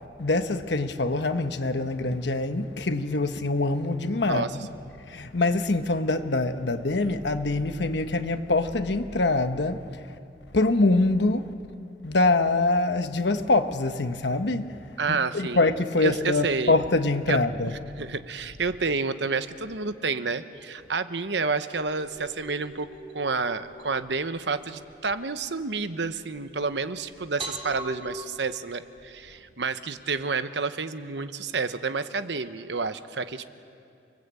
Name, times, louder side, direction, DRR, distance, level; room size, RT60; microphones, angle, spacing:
voice 1, 0.2-4.7 5.1-10.1 10.5-11.5 12.0-14.8 15.1-17.7, left 2 dB, 70° left, 1.2 m, -24 dB
voice 2, 4.3-4.6 15.0-15.6 16.0-16.7 17.3-17.4 18.0-33.4, right 4 dB, 75° right, 1.0 m, -29 dB
sound 1, 21.7-28.2, right 2 dB, 35° right, 4.2 m, -43 dB
29.5 x 20.5 x 8.4 m
head